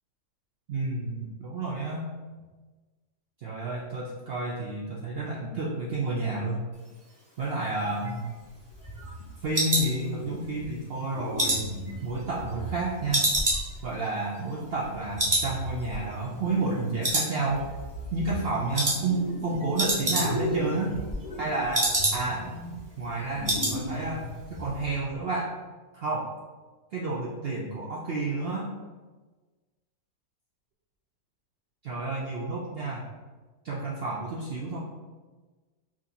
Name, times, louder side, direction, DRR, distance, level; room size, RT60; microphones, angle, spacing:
voice 1, 0.7-2.1 3.4-6.6 7.4-8.3 9.4-11.7 12.0-13.4 13.8-17.7 18.1-21.1 21.4-22.5 23.0-24.2 24.5-25.5 25.9-26.3 26.9-28.7 31.8-33.0 33.6-34.8, right 2 dB, 75° right, -4 dB, 0.5 m, -30 dB
sound 1, 7.8-10.6 11.0-12.7 13.1-14.9 15.2-15.5 15.8-15.9 16.4-16.8 17.0-17.8 18.1-18.4 18.7-19.0 19.3-19.4 19.6-20.6 20.9-22.5 22.8-22.9 23.2-23.8 24.1-24.3 24.6-24.7, right 1 dB, 20° right, 0.5 m, -28 dB
sound 2, 8.7-9.5 9.8-10.8 11.1-14.0 14.8-17.2 17.5-19.9 20.2-25.1, equal, 80° left, 1.2 m, -38 dB
4.8 x 2.6 x 2.7 m, 1.3 s
omnidirectional pair, 1.6 m